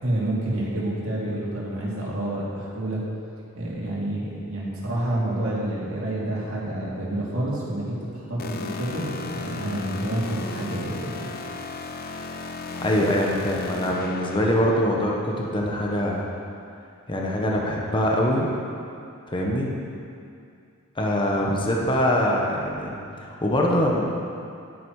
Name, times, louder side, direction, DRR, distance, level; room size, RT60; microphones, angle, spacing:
voice 1, 0.0-3.0 3.5-11.3 21.4-21.6, right 1 dB, 65° right, -6 dB, 2.7 m, -28 dB
sound 1, 8.4-14.9, left 3 dB, 45° left, 0.7 m, -35 dB
voice 2, 12.8-16.3 17.1-18.5 19.3-19.7 20.9-22.9 23.2-24.0, left 1 dB, 25° left, -2 dB, 1.1 m, -23 dB
10.0 x 9.8 x 4.8 m, 2.5 s
head